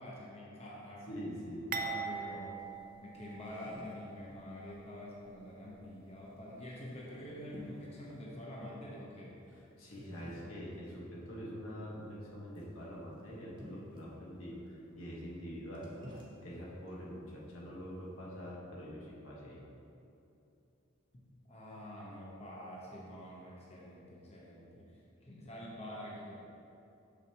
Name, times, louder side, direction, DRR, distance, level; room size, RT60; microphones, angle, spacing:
voice 1, 0.0-1.1 1.4-2.6 3.0-9.4 21.1-24.9 25.2-26.4, left 1 dB, 30° left, -4 dB, 0.9 m, -47 dB
voice 2, 1.1-1.7 9.5-15.9 16.4-19.6, equal, 85° left, -5 dB, 1.5 m, -45 dB
sound 1, 1.7-3.9 4.2-4.4 5.3-5.4, right 5 dB, 45° right, 0.4 m, -41 dB
sound 2, 2.6-18.5, equal, 25° right, 0.9 m, -56 dB
6.7 x 6.4 x 3.0 m, 2.8 s
head